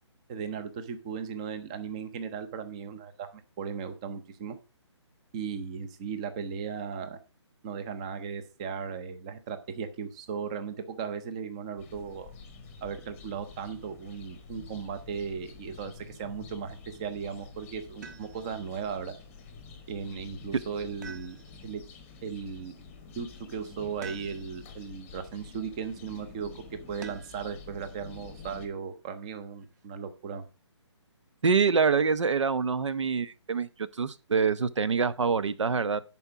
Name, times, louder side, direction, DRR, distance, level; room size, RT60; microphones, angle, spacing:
voice 1, 0.3-4.6 5.3-7.2 7.6-12.3 12.8-19.1 19.9-21.4 21.6-21.8 22.2-22.7 23.2-30.4, right 6 dB, 15° right, 0.6 m, -37 dB
sound 1, 11.8-28.7, left 4 dB, 10° left, 0.9 m, -49 dB
sound 2, 18.0-18.7 21.0-21.8 24.0-24.7 27.0-27.5 29.2-29.9, right 5 dB, 35° right, 1.3 m, -47 dB
voice 2, 31.4-36.0, right 5 dB, 80° right, 1.0 m, -25 dB
11.0 x 4.4 x 6.0 m
hypercardioid pair, 170°, 15 cm